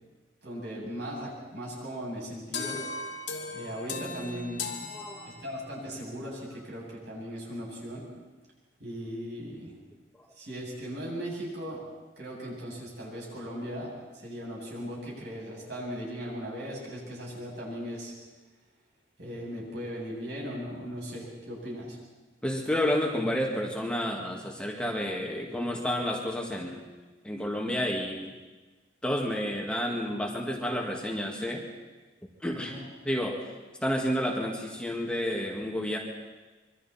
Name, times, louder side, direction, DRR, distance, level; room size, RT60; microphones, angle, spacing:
voice 1, 0.4-2.8 3.5-4.7 5.3-8.1 8.8-9.8 10.3-11.8 12.2-18.1 19.2-22.0 32.5-32.8, equal, 65° right, -4 dB, 8.0 m, -38 dB
sound 1, 2.5-5.8, left 4 dB, 70° left, 2.0 m, -37 dB
voice 2, 4.9-5.3 22.4-26.8 27.2-28.3 29.0-31.6 32.4-32.7 33.0-33.4 33.8-36.0, equal, 5° left, 0 dB, 2.0 m, -30 dB
25.5 x 23.5 x 4.4 m, 1.2 s
head